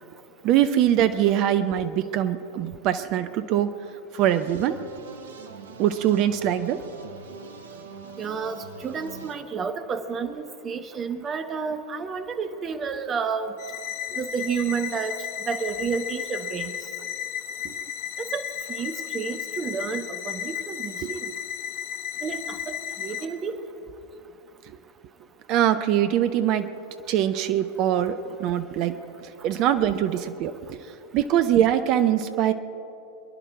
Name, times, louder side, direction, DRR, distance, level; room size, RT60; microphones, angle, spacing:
voice 1, 0.4-3.7 4.1-4.7 5.8-6.8 17.6-17.7 21.0-21.1 25.5-26.7 27.1-28.9 29.2-30.8 31.1-32.5, right 11 dB, 40° right, 11 dB, 0.6 m, -23 dB
sound 1, 4.2-9.4, right 5 dB, 65° right, 1.1 m, -43 dB
voice 2, 8.2-13.5 14.2-15.2 15.4-16.7 18.3-18.4 18.7-21.3 22.2-23.6, right 5 dB, 25° right, 9 dB, 1.0 m, -30 dB
sound 2, 13.6-23.3, left 9 dB, 45° left, 1.2 m, -34 dB
24.0 x 11.0 x 4.7 m, 2.9 s
figure-of-eight pair, 90°, 0 cm